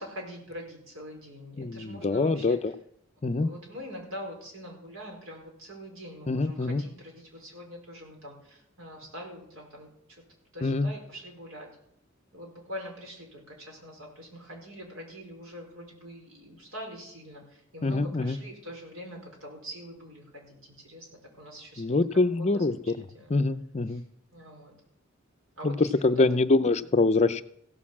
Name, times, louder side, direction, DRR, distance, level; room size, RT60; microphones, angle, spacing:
voice 1, 0.0-2.6 3.3-10.2 10.5-11.7 12.3-21.1 21.4-22.0 22.4-23.3 23.9-24.0 24.3-24.7 25.6-26.2, equal, 90° right, 0 dB, 4.5 m, -44 dB
voice 2, 1.6-2.7 3.2-3.5 6.3-6.8 10.6-10.9 17.8-18.4 21.8-22.7 23.3-24.0 25.6-27.4, left 3 dB, 35° left, 12 dB, 0.5 m, -24 dB
16.0 x 6.7 x 7.3 m, 0.71 s
head